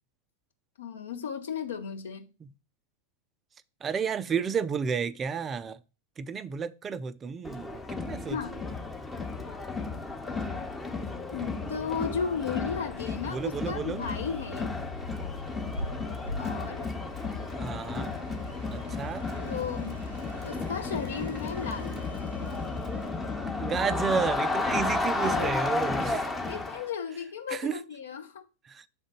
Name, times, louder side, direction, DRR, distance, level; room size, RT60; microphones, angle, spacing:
voice 1, 0.8-2.3 8.3-8.6 11.3-14.7 16.4-16.9 19.4-20.0 20.4-22.0 25.2-25.6 26.0-28.5, left 6 dB, 65° left, 0.9 m, -35 dB
voice 2, 3.8-5.8 6.2-8.4 13.3-14.1 17.5-18.1 18.7-19.3 23.6-26.3 27.5-27.8 28.7-28.9, right 6 dB, 20° right, 0.4 m, -32 dB
Crowd, 7.4-26.9, left 3 dB, 10° left, 0.8 m, -33 dB
sound 1, 13.5-26.1, left 1 dB, 85° right, 0.6 m, -44 dB
6.8 x 3.8 x 6.2 m
figure-of-eight pair, 90°, 0 cm